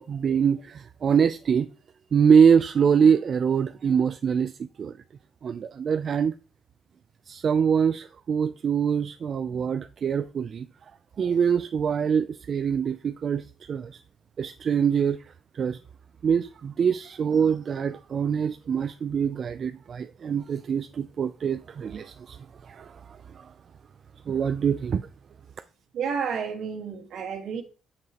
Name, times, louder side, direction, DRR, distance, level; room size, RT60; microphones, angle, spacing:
voice 1, 0.0-1.7 2.1-4.9 5.4-6.3 7.3-10.7 11.2-14.0 14.4-15.8 16.2-23.5 24.3-25.1, right 7 dB, 50° right, 0.3 m, -24 dB
voice 2, 25.9-27.6, right 6 dB, 75° right, 1.5 m, -31 dB
7.5 x 5.8 x 2.9 m
cardioid pair, 90°, 0 cm